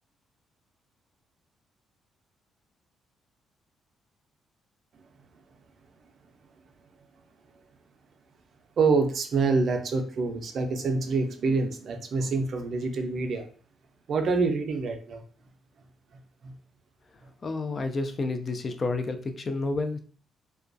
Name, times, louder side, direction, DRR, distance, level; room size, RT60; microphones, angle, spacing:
voice 1, 8.8-13.4 14.1-15.2 16.4-16.5, right 4 dB, 60° right, 5 dB, 0.4 m, -26 dB
voice 2, 17.4-20.0, left 3 dB, 40° left, 7 dB, 0.3 m, -30 dB
2.3 x 2.2 x 2.5 m, 0.42 s
cardioid pair, 90°, 0 cm